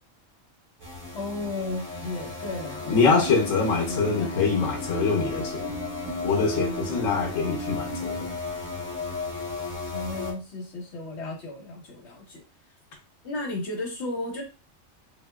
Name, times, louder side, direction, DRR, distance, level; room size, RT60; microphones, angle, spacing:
sound 1, 0.8-10.3, left 3 dB, 30° right, 0.9 m, -35 dB
voice 1, 1.1-3.2 3.9-4.3 9.9-12.4 13.2-14.4, left 2 dB, 60° left, 1.3 m, -34 dB
voice 2, 2.9-5.8 6.2-8.3, left 4 dB, 80° left, 1.1 m, -24 dB
sound 2, 3.3-8.3, right 1 dB, 70° right, 0.9 m, -37 dB
2.8 x 2.7 x 2.2 m
omnidirectional pair, 1.3 m